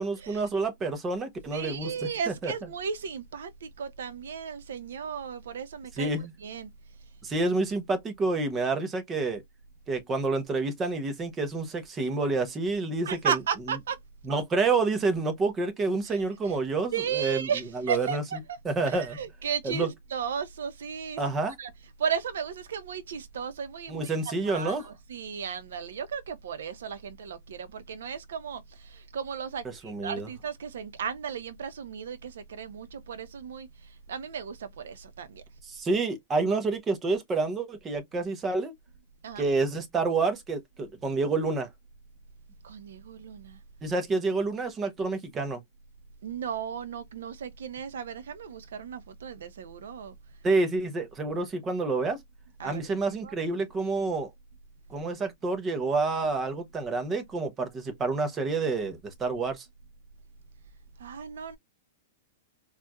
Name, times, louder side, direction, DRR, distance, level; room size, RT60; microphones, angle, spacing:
voice 1, 0.0-2.5 6.0-6.3 7.2-9.4 9.9-13.4 14.2-17.5 17.7-18.2 18.6-19.2 19.6-19.9 21.2-21.6 23.9-24.9 29.8-30.3 35.6-38.7 39.4-41.7 43.8-45.6 50.4-52.2 52.6-54.3 54.9-59.7, right 3 dB, 15° right, 0.7 m, -28 dB
voice 2, 1.5-6.1 6.4-6.7 13.0-14.0 16.1-16.6 16.9-18.4 18.9-21.2 21.6-21.7 22.0-24.1 24.4-35.4 39.2-39.5 42.6-43.6 46.2-50.1 52.6-52.9 53.2-53.3 61.0-61.6, right 7 dB, 75° right, 0.8 m, -35 dB
4.4 x 2.4 x 2.3 m
supercardioid pair, 170°, 0 cm